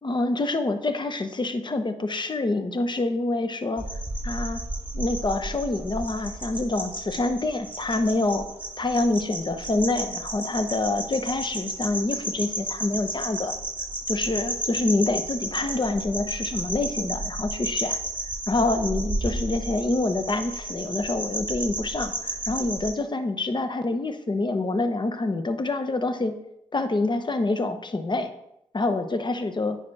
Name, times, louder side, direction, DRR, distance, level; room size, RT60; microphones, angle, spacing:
voice 1, 0.0-3.9 4.2-4.6 4.9-8.5 8.8-13.5 14.1-18.0 18.5-26.4 26.7-28.3 28.7-29.8, left 2 dB, 35° left, 9 dB, 0.9 m, -26 dB
sound 1, 3.8-22.9, right 1 dB, 10° right, 2.0 m, -32 dB
9.5 x 5.1 x 3.4 m, 0.79 s
cardioid pair, 55°, 14 cm